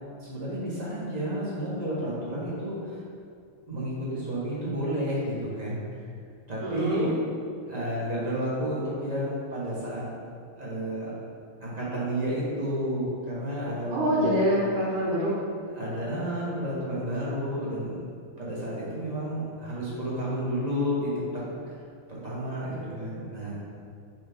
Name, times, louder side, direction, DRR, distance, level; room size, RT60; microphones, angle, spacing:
voice 1, 0.2-3.0 3.7-5.8 6.5-7.2 7.7-10.0 10.6-11.1 11.6-14.4 15.7-18.0 18.4-21.7 22.1-23.6, equal, 25° right, -8 dB, 1.1 m, -31 dB
voice 2, 6.6-7.2 13.9-15.3 22.6-23.3, equal, 85° right, -6 dB, 2.1 m, -26 dB
7.7 x 3.5 x 3.5 m, 2.4 s
omnidirectional pair, 2.4 m